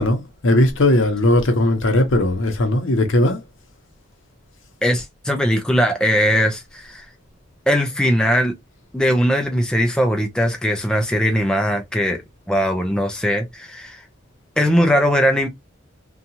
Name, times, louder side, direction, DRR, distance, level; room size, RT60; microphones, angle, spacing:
voice 1, 0.0-3.4, left 1 dB, 75° left, 0.7 m, -18 dB
voice 2, 4.8-7.1 7.7-8.5 8.9-12.2 12.5-14.0 14.6-15.5, equal, 5° left, 0.4 m, -19 dB
2.8 x 2.3 x 2.7 m
head